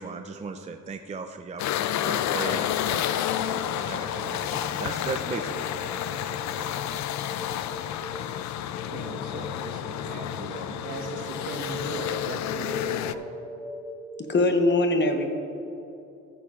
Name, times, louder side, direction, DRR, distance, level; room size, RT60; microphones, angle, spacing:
voice 1, 0.0-3.2 3.7-5.8 10.4-10.7, right 4 dB, 25° right, 6 dB, 0.5 m, -37 dB
sound 1, 1.6-13.1, left 11 dB, 65° left, 0.5 m, -30 dB
sound 2, 2.9-14.1, right 1 dB, 10° left, 1.2 m, -43 dB
voice 2, 8.9-13.3, right 3 dB, 85° right, 2 dB, 1.4 m, -39 dB
voice 3, 14.3-15.3, left 2 dB, 35° left, 5 dB, 1.1 m, -21 dB
15.0 x 9.8 x 2.5 m, 2.9 s
cardioid pair, 90°, 30 cm